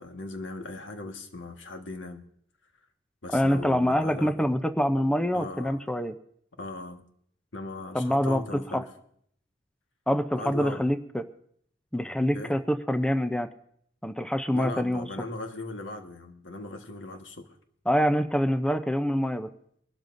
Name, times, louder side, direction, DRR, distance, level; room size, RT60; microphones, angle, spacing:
voice 1, 0.0-2.2 3.2-4.4 5.3-5.8 6.6-7.0 7.5-8.9 10.3-10.8 12.3-12.5 14.5-17.6, left 2 dB, 85° left, 4 dB, 1.5 m, -38 dB
voice 2, 3.3-6.1 7.9-8.4 8.7-8.8 10.1-11.2 11.9-13.5 14.0-15.1 17.9-19.5, equal, 5° left, 8 dB, 0.5 m, -25 dB
23.5 x 12.5 x 2.6 m, 0.67 s
head